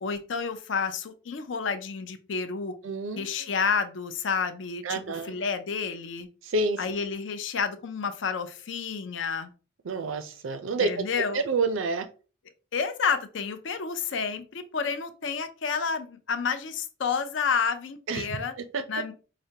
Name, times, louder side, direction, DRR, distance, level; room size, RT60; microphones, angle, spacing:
voice 1, 0.0-2.7 3.2-6.3 6.8-9.5 10.8-11.4 12.7-18.5 18.9-19.1, left 5 dB, 70° left, 9 dB, 0.5 m, -30 dB
voice 2, 2.8-3.5 4.8-5.4 6.4-6.8 9.8-11.1 11.3-12.1 18.1-18.3 18.6-18.8, right 3 dB, 85° right, 9 dB, 0.5 m, -29 dB
4.8 x 2.1 x 2.7 m, 0.35 s
head